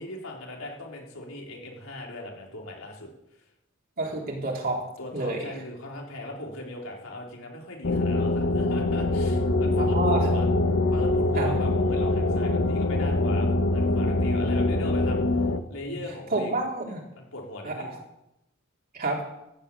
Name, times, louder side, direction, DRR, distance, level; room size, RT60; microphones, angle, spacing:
voice 1, 0.0-3.1 5.0-10.5 10.9-15.2 15.7-16.6 17.2-18.0, left 2 dB, 85° left, -1 dB, 3.9 m, -39 dB
voice 2, 4.0-4.8 5.1-5.5 9.8-10.4 11.4-11.5 16.3-17.0 17.6-17.7 18.9-19.2, right 2 dB, 45° right, -1 dB, 3.8 m, -28 dB
sound 1, 7.8-15.6, left 2 dB, 65° left, 1.1 m, -24 dB
14.5 x 8.5 x 8.4 m, 0.86 s
head